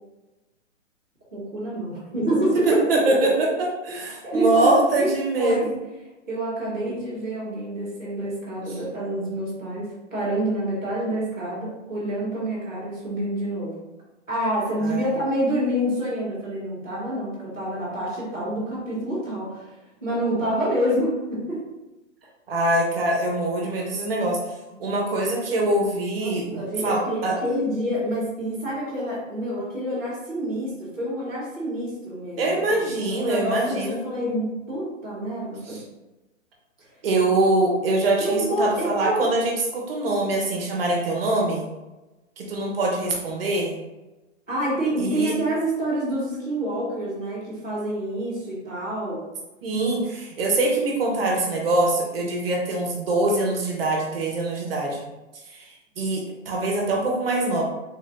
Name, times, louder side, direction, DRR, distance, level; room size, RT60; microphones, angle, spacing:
voice 1, 1.3-2.8 3.2-3.3 4.2-5.7 6.3-13.7 14.3-19.7 20.0-21.6 26.2-32.6 33.1-35.8 38.2-39.3 44.5-49.2, right 1 dB, 5° left, -21 dB, 0.4 m, -27 dB
voice 2, 2.7-3.3 3.6-5.7 14.8-15.1 22.5-24.4 24.8-27.3 32.4-34.0 35.6-35.8 37.0-41.7 42.4-43.7 45.0-45.4 49.6-55.0 55.5-57.6, right 2 dB, 50° right, -1 dB, 1.1 m, -24 dB
3.7 x 2.7 x 3.4 m, 1.1 s
hypercardioid pair, 165°, 38 cm